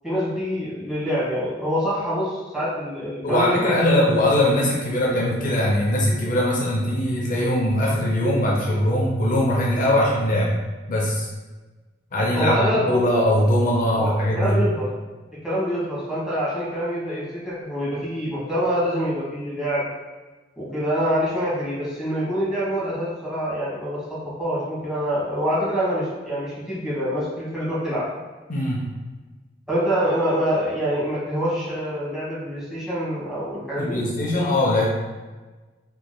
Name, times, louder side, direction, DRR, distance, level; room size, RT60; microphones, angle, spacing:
voice 1, 0.0-4.0 9.9-10.0 12.3-13.0 13.9-14.9 15.4-19.9 20.6-28.1 29.7-34.1, equal, 5° right, -10 dB, 1.3 m, -25 dB
voice 2, 3.2-10.5 10.9-11.3 12.1-14.6 28.5-28.8 33.8-34.9, left 1 dB, 50° left, -3 dB, 0.6 m, -21 dB
4.6 x 3.0 x 2.2 m, 1.2 s
head